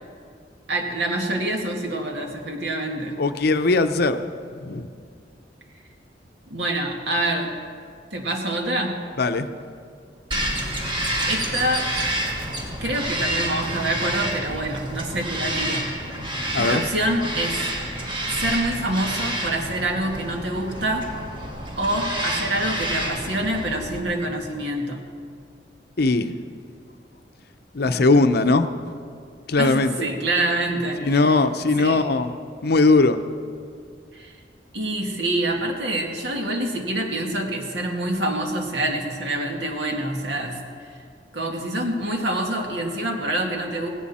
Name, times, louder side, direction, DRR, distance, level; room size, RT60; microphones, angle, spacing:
voice 1, 0.7-3.2 6.5-7.5 8.1-9.0 11.3-11.9 12.8-15.9 16.6-17.6 18.3-21.1 21.8-25.0 29.6-31.4 31.8-32.0 34.1-34.3 34.7-40.6 41.3-43.9, right 1 dB, 75° right, 2 dB, 2.1 m, -26 dB
voice 2, 3.2-4.2 4.6-4.9 9.2-9.5 16.5-16.8 26.0-26.3 27.7-28.7 29.5-29.9 31.0-32.3 32.6-33.2, left 3 dB, 60° left, 9 dB, 0.7 m, -19 dB
Bird vocalization bird call bird song, 10.3-24.0, right 1 dB, 30° right, 2.0 m, -28 dB
17.5 x 17.5 x 4.3 m, 2.2 s
head